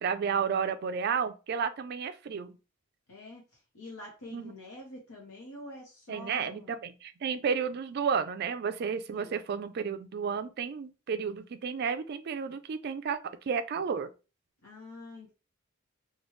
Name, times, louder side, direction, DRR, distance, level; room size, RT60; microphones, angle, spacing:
voice 1, 0.0-2.6 4.3-4.5 6.1-13.2 13.5-14.1, right 6 dB, 50° right, 0.3 m, -32 dB
voice 2, 3.1-6.7 9.1-9.4 14.6-15.4, left 2 dB, 80° left, 0.9 m, -46 dB
3.1 x 2.3 x 3.1 m
head